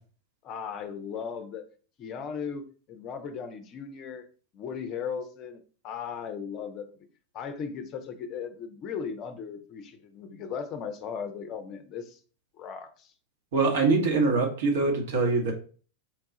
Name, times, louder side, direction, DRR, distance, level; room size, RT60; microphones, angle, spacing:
voice 1, 0.4-1.6 2.0-4.2 4.5-7.1 7.3-12.2 12.6-13.1, left 6 dB, 35° left, 8 dB, 0.6 m, -37 dB
voice 2, 13.5-15.5, right 3 dB, 55° right, 2 dB, 1.1 m, -23 dB
4.5 x 2.4 x 3.7 m, 0.39 s
figure-of-eight pair, 90°, 0 cm